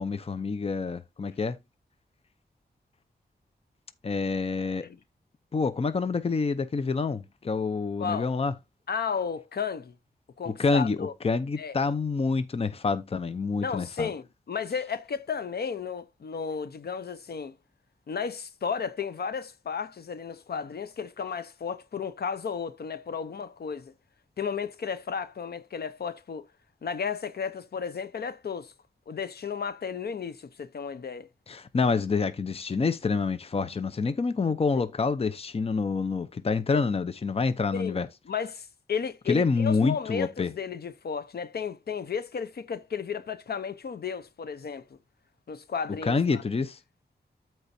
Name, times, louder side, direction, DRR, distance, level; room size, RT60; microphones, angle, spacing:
voice 1, 0.0-1.6 4.0-4.9 5.5-8.5 10.5-14.1 31.5-38.1 39.3-40.5 46.0-46.8, left 4 dB, 35° left, 0.7 m, -27 dB
voice 2, 8.0-8.3 8.9-9.9 10.4-11.1 11.6-11.7 13.6-17.5 18.1-23.9 24.4-26.5 26.8-28.7 29.1-31.3 37.7-38.0 38.3-44.9 45.5-46.4, left 6 dB, 70° left, 0.8 m, -33 dB
13.5 x 4.6 x 2.7 m
wide cardioid pair, 150°, 17 cm